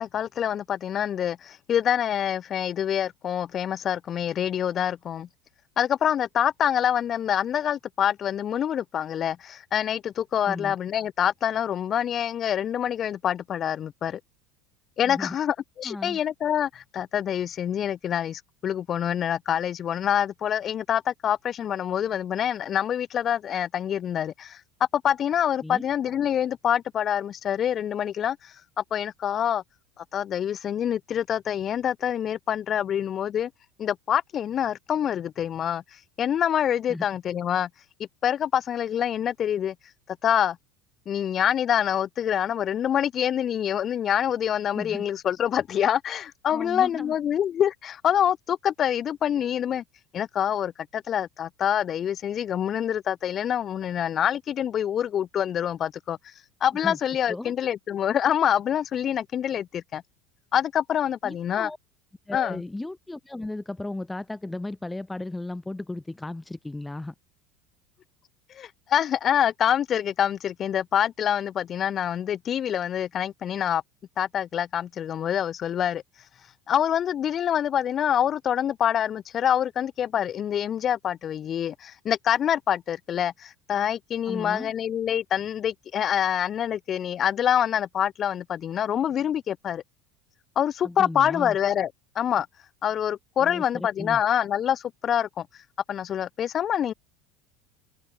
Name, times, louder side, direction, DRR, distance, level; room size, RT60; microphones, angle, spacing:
voice 1, 0.0-5.3 5.8-14.2 15.0-24.6 24.9-29.6 30.0-33.5 33.8-35.8 36.2-37.7 38.2-39.7 40.2-40.6 41.1-49.8 50.1-56.3 56.6-60.0 60.5-61.7 62.3-62.6 68.5-73.8 74.2-76.0 76.7-89.8 90.6-91.9 92.2-92.5 92.8-95.5 95.9-96.9, left 9 dB, 40° left, 7.4 m, -26 dB
voice 2, 10.4-10.8 15.0-15.4 15.8-16.2 25.6-25.8 36.9-37.0 44.7-45.0 46.5-47.1 56.8-57.0 57.3-57.5 61.2-61.8 62.3-67.1 84.3-84.7 90.8-91.6 93.4-94.2, left 2 dB, 10° left, 4.5 m, -35 dB
open air
hypercardioid pair, 75°, 0 cm